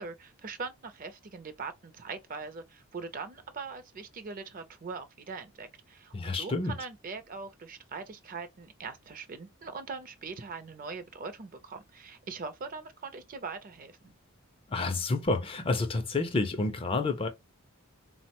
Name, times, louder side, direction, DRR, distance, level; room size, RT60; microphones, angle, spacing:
voice 1, 0.0-14.1, right 4 dB, 40° right, 0.4 m, -41 dB
voice 2, 6.1-6.7 14.7-17.3, left 3 dB, 25° left, 0.4 m, -29 dB
3.7 x 2.1 x 2.8 m
head